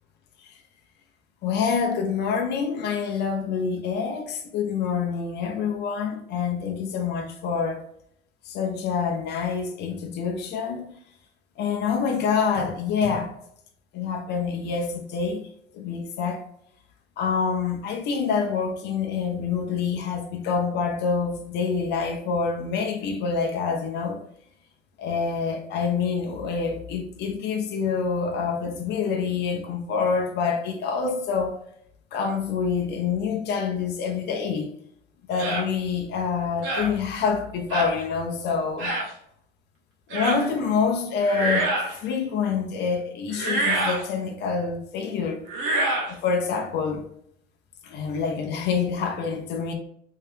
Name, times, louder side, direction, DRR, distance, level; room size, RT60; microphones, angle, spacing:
voice 1, 1.4-7.8 8.5-11.0 11.6-13.3 13.9-15.4 15.7-16.4 17.2-24.2 25.0-31.6 32.1-34.7 35.3-38.9 40.1-45.4 46.1-47.1 47.8-49.7, left 5 dB, 65° left, 0.7 m, -26 dB
sound 1, 35.4-35.7 36.6-36.9 37.7-37.9 38.8-39.1 40.1-40.4 41.2-42.0 43.3-44.0 45.5-46.1, right 2 dB, 75° right, 1.2 m, -26 dB
3.3 x 2.9 x 3.4 m
cardioid pair, 120°, 19 cm